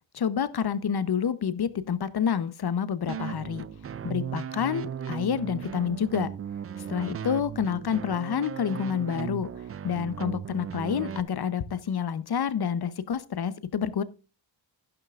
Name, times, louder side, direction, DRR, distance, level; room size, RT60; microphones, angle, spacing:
voice 1, 0.1-3.7 4.0-6.3 6.9-9.5 9.8-14.0, left 7 dB, 50° left, 0.9 m, -28 dB
sound 1, 3.1-11.2, right 8 dB, 30° right, 0.4 m, -36 dB
11.0 x 11.0 x 2.5 m
cardioid pair, 70°, 47 cm